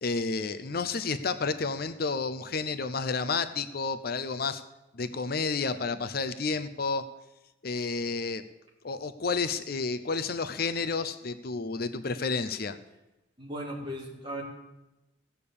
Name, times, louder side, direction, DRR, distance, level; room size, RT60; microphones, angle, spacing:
voice 1, 0.0-4.6 4.9-7.0 7.6-8.4 8.8-12.8, left 4 dB, 50° left, 10 dB, 0.6 m, -31 dB
voice 2, 13.4-14.4, equal, 25° right, -2 dB, 3.2 m, -37 dB
16.5 x 6.9 x 8.5 m, 0.99 s
head